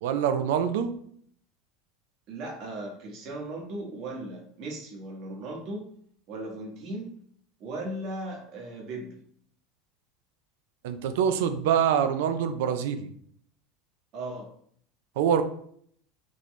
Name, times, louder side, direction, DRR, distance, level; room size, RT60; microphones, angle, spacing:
voice 1, 0.0-0.9 10.8-13.1 15.2-15.4, right 8 dB, 80° right, 10 dB, 0.4 m, -25 dB
voice 2, 2.3-5.9 6.3-7.1 7.6-9.2 14.1-14.5, right 2 dB, 50° right, -1 dB, 1.4 m, -37 dB
4.2 x 3.0 x 3.2 m, 0.63 s
supercardioid pair, 145°, 0 cm